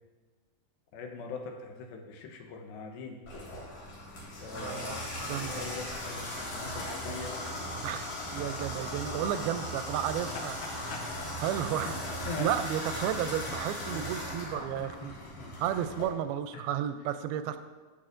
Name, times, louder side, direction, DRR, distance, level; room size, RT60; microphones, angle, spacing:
voice 1, 0.9-3.2 4.4-7.5 10.3-11.4 11.8-12.0 12.3-12.6 13.5-13.6 13.9-14.1 14.5-15.6 16.5-16.6 17.5-17.6, left 4 dB, 80° left, 3 dB, 2.8 m, -43 dB
Water tap faucet / Bathtub (filling or washing), 3.3-16.1, left 1 dB, 65° left, 4.2 m, -38 dB
voice 2, 4.5-5.0 5.2-5.6 7.8-10.6 11.4-11.9 12.4-15.1 15.6-17.6, right 10 dB, 90° right, 10 dB, 2.4 m, -32 dB
13.0 x 7.7 x 2.6 m, 1.3 s
omnidirectional pair, 4.3 m